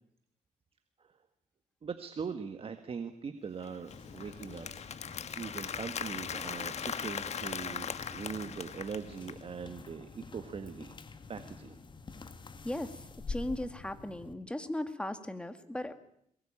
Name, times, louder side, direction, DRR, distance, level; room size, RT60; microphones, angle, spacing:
voice 1, 1.8-4.7 5.2-10.9 11.3-11.8, right 6 dB, 40° right, 8 dB, 1.7 m, -41 dB
Applause, 3.6-9.4, left 7 dB, 50° left, 1.5 m, -39 dB
sound 1, 3.9-14.3, left 4 dB, 35° left, 2.1 m, -48 dB
voice 2, 12.6-13.0 13.3-15.9, left 1 dB, 5° left, 9 dB, 2.2 m, -37 dB
22.0 x 20.5 x 8.9 m, 0.71 s
cardioid pair, 105°, 14 cm